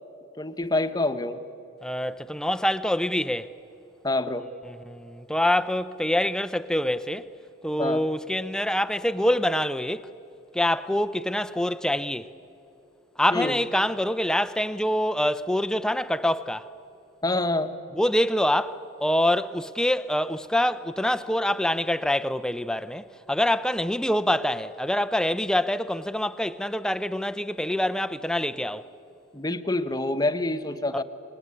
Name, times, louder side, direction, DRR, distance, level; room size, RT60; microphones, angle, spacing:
voice 1, 0.4-1.4 4.0-4.5 7.8-8.0 13.3-13.6 17.2-17.7 29.3-31.0, left 2 dB, 20° left, 1.0 m, -26 dB
voice 2, 1.8-3.5 4.7-7.3 7.6-10.1 10.5-12.3 13.2-16.7 17.9-28.8 30.9-31.0, left 1 dB, 5° left, 0.6 m, -25 dB
26.5 x 20.5 x 9.8 m
head